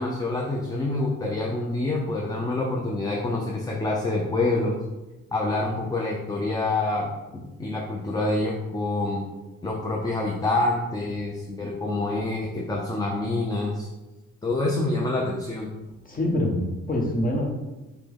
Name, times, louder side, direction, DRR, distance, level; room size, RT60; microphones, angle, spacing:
voice 1, 0.0-4.8 5.3-9.3 9.6-13.9 14.4-15.7, left 2 dB, 15° left, -1 dB, 0.6 m, -27 dB
voice 2, 16.0-17.4, left 1 dB, 30° left, 0 dB, 1.1 m, -25 dB
5.8 x 2.3 x 3.4 m, 1.1 s
cardioid pair, 90°, 30 cm